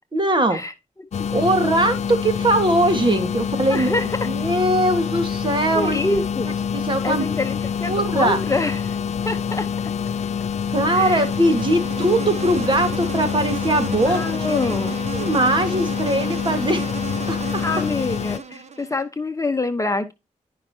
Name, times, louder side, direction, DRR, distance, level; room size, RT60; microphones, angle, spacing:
voice 1, 0.1-0.6 1.3-6.0 6.7-7.2 7.8-8.4 10.7-14.6 15.1-16.9 17.3-17.6, right 1 dB, 40° right, 1.7 m, -21 dB
sound 1, 1.1-18.4, left 7 dB, 60° left, 0.4 m, -26 dB
voice 2, 3.5-4.3 5.7-6.5 7.0-9.0 9.3-9.7 10.9-11.3 14.0-15.0 17.6-20.1, left 2 dB, 25° left, 0.9 m, -26 dB
Insect, 10.8-19.0, right 6 dB, 60° right, 1.2 m, -34 dB
11.5 x 5.5 x 2.8 m
wide cardioid pair, 85°, 13 cm